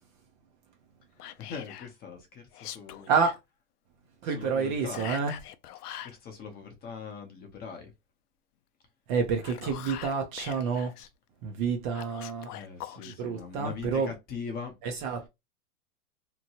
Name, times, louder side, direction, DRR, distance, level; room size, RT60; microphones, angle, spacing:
Whispering, 1.2-1.9 2.5-3.4 4.9-6.2 9.2-11.1 11.9-13.2, left 12 dB, 80° left, 0.5 m, -43 dB
voice 1, 1.5-3.1 4.2-5.1 6.0-7.9 12.5-14.7, left 5 dB, 20° left, 0.7 m, -41 dB
voice 2, 3.1-3.4 4.2-5.4 9.1-10.9 11.4-12.5 13.1-14.1 14.8-15.3, right 5 dB, 35° right, 0.5 m, -29 dB
2.9 x 2.2 x 2.8 m
hypercardioid pair, 125°, 46 cm